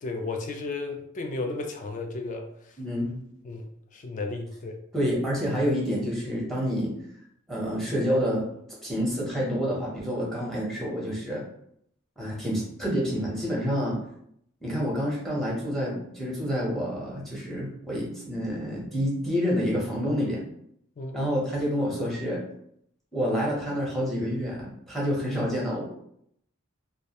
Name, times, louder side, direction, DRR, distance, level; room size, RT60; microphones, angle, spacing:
voice 1, 0.0-2.4 3.4-4.8 11.1-11.2 21.0-21.3, left 3 dB, 35° left, 4 dB, 0.3 m, -34 dB
voice 2, 2.8-3.1 4.9-6.9 7.5-8.5 8.8-11.4 12.2-14.0 14.6-20.4 21.1-22.4 23.1-25.9, equal, ahead, -5 dB, 0.7 m, -28 dB
2.3 x 2.0 x 2.8 m, 0.72 s
head